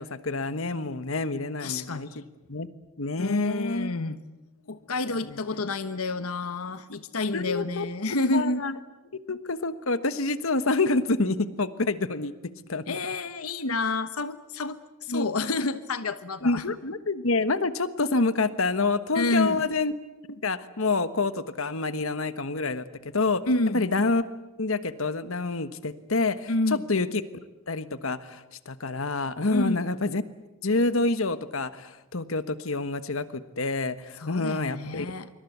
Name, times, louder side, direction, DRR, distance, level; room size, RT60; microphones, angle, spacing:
voice 1, 0.0-2.2 2.5-2.7 3.0-3.9 5.3-5.4 7.3-7.9 8.3-8.7 9.3-12.3 12.7-13.0 15.1-15.3 16.4-19.9 20.3-22.8 23.1-23.4 23.7-24.2 24.6-27.2 27.7-30.2 30.6-35.1, left 3 dB, 70° left, 12 dB, 1.4 m, -27 dB
voice 2, 1.6-2.2 3.2-4.2 4.7-8.6 12.9-16.6 19.1-19.7 23.5-23.8 26.5-26.8 29.5-29.8 34.2-35.3, left 2 dB, 90° left, 11 dB, 1.2 m, -29 dB
25.5 x 24.5 x 8.1 m, 1.0 s
head